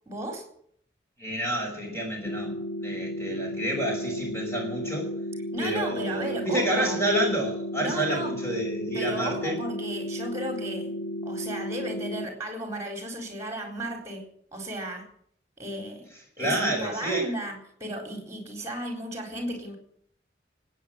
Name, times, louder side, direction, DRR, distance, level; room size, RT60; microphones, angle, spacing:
voice 1, 0.1-0.4 5.5-7.0 7.8-8.4 8.9-10.9 11.2-15.1 15.6-16.1 16.4-19.8, right 1 dB, 15° right, 3 dB, 4.1 m, -35 dB
voice 2, 1.2-5.1 5.6-9.6 16.4-17.3, right 1 dB, 15° left, 0 dB, 5.7 m, -29 dB
sound 1, 2.3-12.3, equal, 55° left, 2.0 m, -34 dB
19.5 x 9.2 x 7.8 m, 0.65 s
head